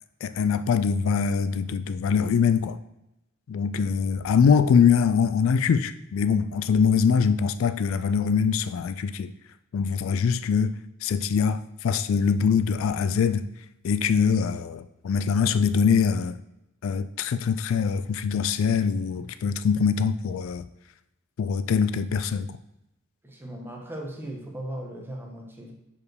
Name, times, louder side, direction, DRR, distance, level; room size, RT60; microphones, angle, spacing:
voice 1, 0.2-2.8 3.5-9.3 9.7-10.7 11.0-13.5 13.8-16.4 16.8-20.6 21.4-22.6, left 6 dB, 65° left, 0.3 m, -23 dB
voice 2, 23.2-25.7, right 1 dB, 10° right, 1.2 m, -37 dB
5.2 x 4.9 x 6.3 m
head